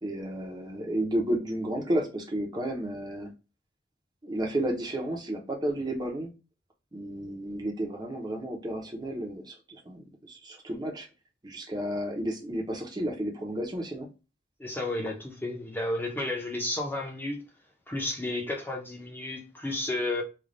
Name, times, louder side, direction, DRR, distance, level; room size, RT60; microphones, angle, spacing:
voice 1, 0.0-3.3 4.2-6.3 6.9-11.1 11.4-14.1, right 1 dB, 25° right, 0.8 m, -32 dB
voice 2, 14.6-17.4 17.9-20.2, left 2 dB, 10° left, 0.9 m, -32 dB
3.3 x 2.4 x 3.8 m
head